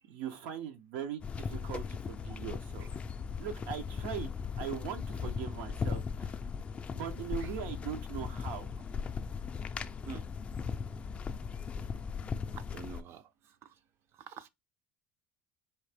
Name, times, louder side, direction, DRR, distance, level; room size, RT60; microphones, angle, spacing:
voice 1, 0.1-2.9 3.4-4.3 4.6-6.4 6.9-8.7, right 8 dB, 90° right, 0.6 m, -40 dB
sound 1, 1.2-13.0, left 5 dB, 20° left, 0.3 m, -38 dB
voice 2, 12.5-13.3 14.3-14.5, right 7 dB, 45° right, 0.4 m, -46 dB
4.3 x 2.8 x 3.3 m
cardioid pair, 140°, 6 cm